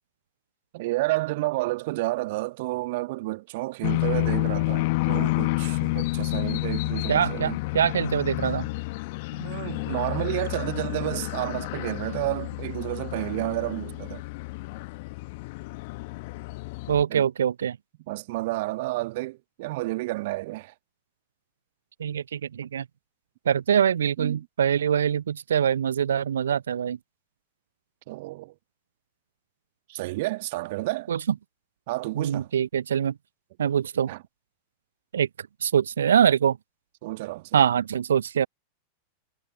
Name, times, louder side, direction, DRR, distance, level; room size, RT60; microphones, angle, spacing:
voice 1, 0.7-7.6 9.3-14.2 17.1-17.2 18.1-20.7 24.2-24.5 28.1-28.5 29.9-31.1 31.9-32.5 34.1-34.2 37.0-37.6, right 20 dB, 50° right, 1.7 m, -30 dB
sound 1, 3.8-17.0, left 23 dB, 50° left, 1.4 m, -29 dB
voice 2, 7.1-8.7 16.9-17.8 22.0-22.9 23.5-27.0 31.1-31.2 32.1-33.1 33.6-34.1 35.1-35.3 35.6-36.6 37.5-38.5, right 8 dB, 65° right, 0.7 m, -23 dB
figure-of-eight pair, 90°, 0 cm